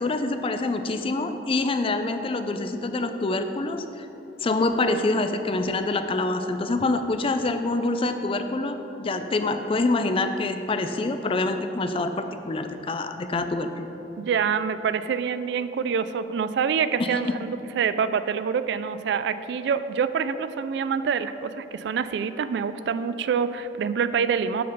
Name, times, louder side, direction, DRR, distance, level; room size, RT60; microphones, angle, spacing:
voice 1, 0.0-4.1 4.4-13.9 17.1-17.3, left 2 dB, 30° left, 8 dB, 0.4 m, -26 dB
voice 2, 14.2-24.6, right 6 dB, 70° right, 13 dB, 0.3 m, -26 dB
8.4 x 3.9 x 6.7 m, 3.0 s
head